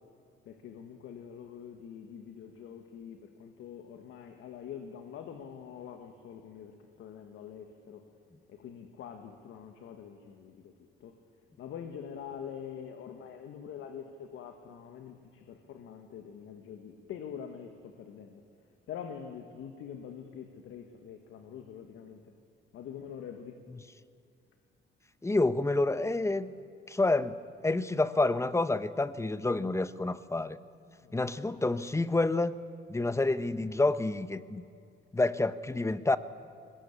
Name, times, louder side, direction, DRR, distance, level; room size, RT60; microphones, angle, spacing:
voice 1, 0.4-8.0 8.5-10.7 11.0-11.2 11.6-18.4 18.9-22.3 22.7-23.6 31.0-31.2, left 8 dB, 80° left, 6 dB, 1.7 m, -45 dB
voice 2, 25.2-26.5 26.9-27.4 27.6-30.6 31.1-32.6 32.9-34.6 35.1-36.2, left 2 dB, 15° left, 14 dB, 0.9 m, -28 dB
21.5 x 19.5 x 8.5 m, 2.4 s
cardioid pair, 90°, 20 cm